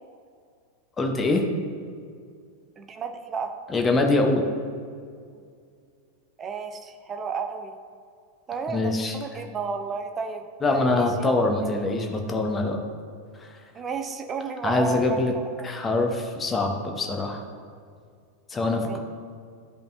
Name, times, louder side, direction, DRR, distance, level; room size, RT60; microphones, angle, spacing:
voice 1, 1.0-1.4 3.7-4.4 8.7-9.2 10.6-12.8 13.4-13.5 14.6-15.3 15.6-17.4 18.5-19.0, left 2 dB, 20° left, 3 dB, 1.0 m, -24 dB
voice 2, 2.8-3.5 6.4-7.8 8.5-11.7 13.7-15.2 15.6-15.7 18.8-19.0, right 5 dB, 25° right, 6 dB, 0.7 m, -32 dB
13.5 x 5.2 x 2.7 m, 2.2 s
figure-of-eight pair, 90°, 0 cm